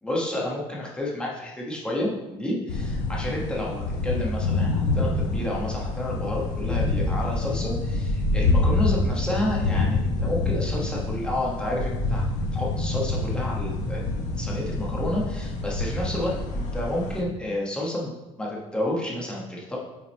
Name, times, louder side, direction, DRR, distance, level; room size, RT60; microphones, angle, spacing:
voice 1, 0.0-12.2 12.5-18.1 18.4-19.8, left 1 dB, 10° left, -4 dB, 1.2 m, -30 dB
sound 1, 2.7-17.2, left 2 dB, 90° left, 0.9 m, -26 dB
5.8 x 3.7 x 4.3 m, 1.0 s
cardioid pair, 160°, 12 cm